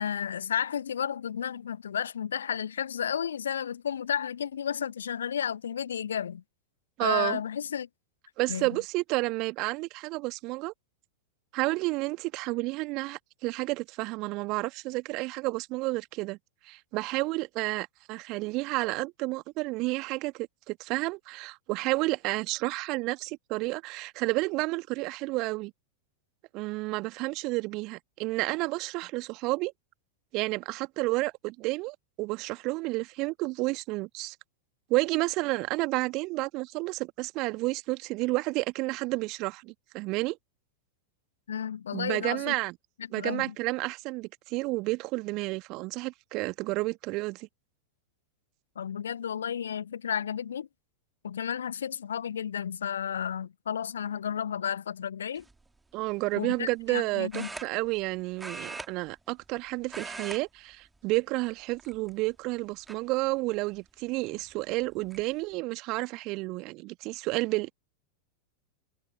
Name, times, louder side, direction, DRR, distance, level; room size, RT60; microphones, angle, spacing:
voice 1, 0.0-6.4 7.0-7.9 8.5-8.8 41.5-42.5 43.2-43.5 48.8-50.7 51.2-55.4 56.4-57.5, left 8 dB, 65° left, 1.0 m, -32 dB
voice 2, 7.0-7.4 8.4-10.7 11.5-16.4 16.7-25.7 26.5-29.7 30.3-34.4 34.9-40.4 41.9-42.8 43.1-47.5 55.9-67.7, right 23 dB, 40° right, 2.1 m, -31 dB
sound 1, 55.4-55.7 57.3-58.1 58.4-59.6 59.8-60.4 60.7-61.0 61.7-62.3 62.9-63.0 64.4-64.5 64.8-65.2, right 3 dB, 10° right, 2.3 m, -41 dB
figure-of-eight pair, 90°, 0 cm